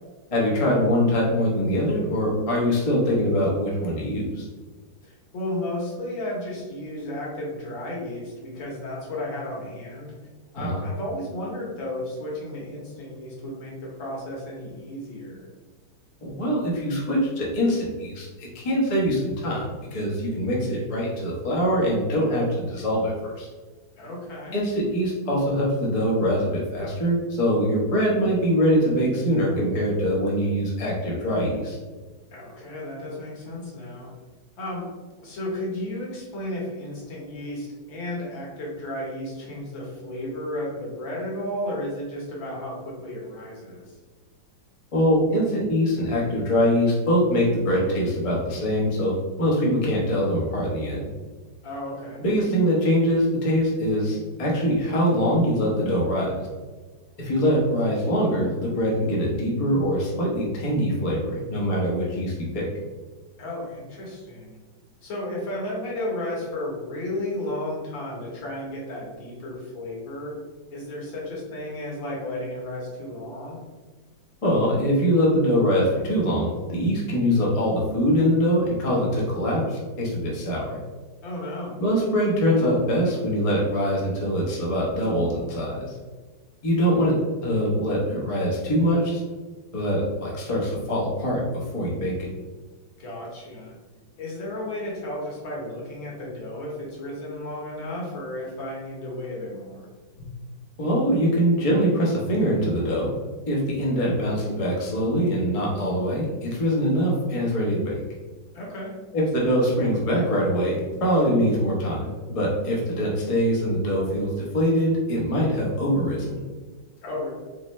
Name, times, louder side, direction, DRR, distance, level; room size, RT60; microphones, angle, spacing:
voice 1, 0.3-4.5 10.5-10.8 16.2-23.5 24.5-31.8 44.9-51.1 52.2-56.5 57.2-62.6 74.4-80.8 81.8-85.9 86.6-87.1 87.4-89.2 89.7-91.4 91.7-92.3 100.8-103.1 103.5-108.0 109.1-116.4, equal, 35° left, -4 dB, 0.5 m, -23 dB
voice 2, 5.0-10.1 10.5-15.5 24.0-24.6 32.3-34.1 34.6-34.9 35.2-43.9 51.6-52.2 63.4-64.6 65.0-70.3 70.7-73.6 81.2-81.8 93.0-93.7 94.2-99.9 108.5-108.9 117.0-117.3, left 1 dB, 70° left, -4 dB, 1.9 m, -33 dB
3.9 x 3.1 x 3.1 m, 1.3 s
omnidirectional pair, 2.2 m